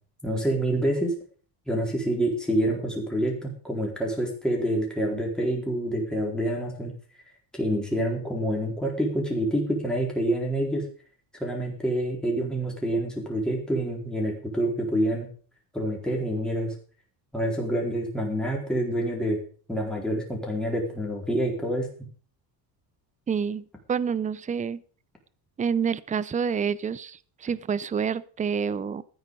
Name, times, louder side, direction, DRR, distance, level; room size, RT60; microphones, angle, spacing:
voice 1, 0.2-1.2 1.7-6.9 7.5-10.9 11.4-15.3 15.7-16.7 17.3-19.4 19.7-21.9, right 1 dB, ahead, -2 dB, 4.2 m, -27 dB
voice 2, 23.3-24.8 25.6-29.0, right 6 dB, 15° right, 18 dB, 0.5 m, -28 dB
13.5 x 9.5 x 5.3 m, 0.42 s
cardioid pair, 120°, 46 cm